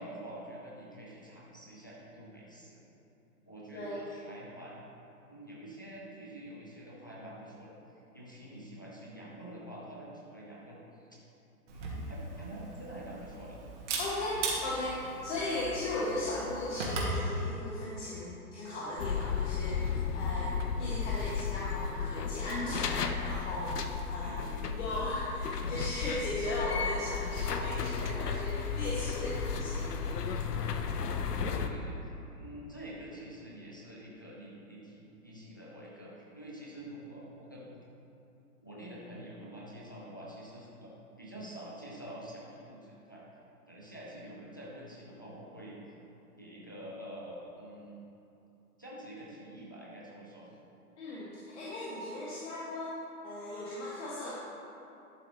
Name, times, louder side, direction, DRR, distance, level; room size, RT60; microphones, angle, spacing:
voice 1, 0.0-2.8 3.5-4.8 5.3-11.1 11.7-13.6 24.2-24.9 31.3-37.8 38.6-40.9 41.2-43.2 43.7-45.9 46.4-48.0 48.8-50.5, right 1 dB, 15° left, -5 dB, 0.3 m, -47 dB
Camera, 11.7-17.2, right 2 dB, 50° right, 1.9 m, -38 dB
voice 2, 14.0-20.5 20.8-23.7 24.0-24.4 24.7-30.1 51.0-52.9 53.2-54.3, left 1 dB, 50° left, -7 dB, 1.6 m, -37 dB
sound 1, 19.0-31.7, left 6 dB, 80° left, 0.8 m, -34 dB
11.5 x 6.9 x 2.9 m, 2.8 s
hypercardioid pair, 135°, 47 cm